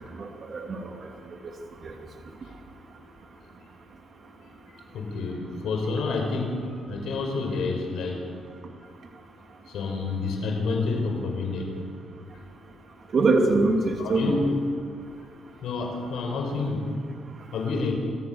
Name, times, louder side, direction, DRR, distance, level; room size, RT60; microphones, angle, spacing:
voice 1, 0.1-0.9 1.8-1.9 13.1-14.4, right 3 dB, 50° right, 2 dB, 2.8 m, -23 dB
voice 2, 4.9-8.3 9.7-11.8 12.3-12.4 14.0-14.5 15.6-16.9 17.5-17.9, left 3 dB, 75° left, 2 dB, 5.0 m, -29 dB
26.5 x 14.5 x 7.1 m, 2.2 s
cardioid pair, 90°, 0 cm